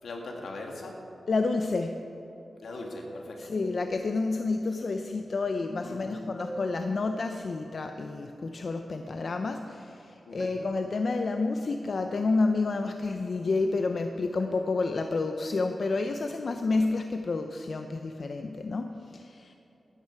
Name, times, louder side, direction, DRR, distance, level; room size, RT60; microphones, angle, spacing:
voice 1, 0.0-0.9 2.6-3.5 5.8-6.2 10.3-10.6, left 2 dB, 85° left, 0 dB, 2.2 m, -40 dB
voice 2, 1.3-2.0 3.4-19.5, left 3 dB, 60° left, 6 dB, 0.6 m, -29 dB
sound 1, 2.7-4.0 6.4-7.9 10.4-11.9 14.4-15.8, right 1 dB, 20° right, 1.4 m, -44 dB
14.5 x 12.5 x 4.7 m, 2.9 s
wide cardioid pair, 80°, 0 cm